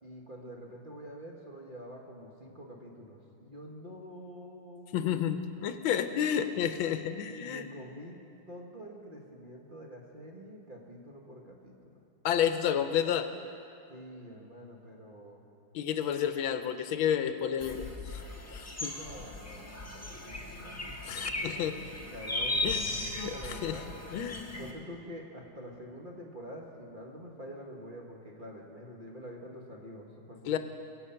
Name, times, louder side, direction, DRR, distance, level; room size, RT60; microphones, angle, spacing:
voice 1, 0.0-5.2 7.3-8.2 8.5-12.0 13.9-15.4 18.8-21.7 22.1-23.9 24.6-30.6, equal, 30° right, -1 dB, 1.2 m, -47 dB
voice 2, 4.9-7.6 12.2-13.3 15.7-18.2 18.5-18.9 21.0-21.8 22.6-23.8 24.1-24.6 30.5-30.6, left 9 dB, 85° left, 9 dB, 1.5 m, -31 dB
sound 1, 17.6-24.7, left 2 dB, 10° left, 0.9 m, -37 dB
22.0 x 8.2 x 5.6 m, 2.6 s
omnidirectional pair, 2.2 m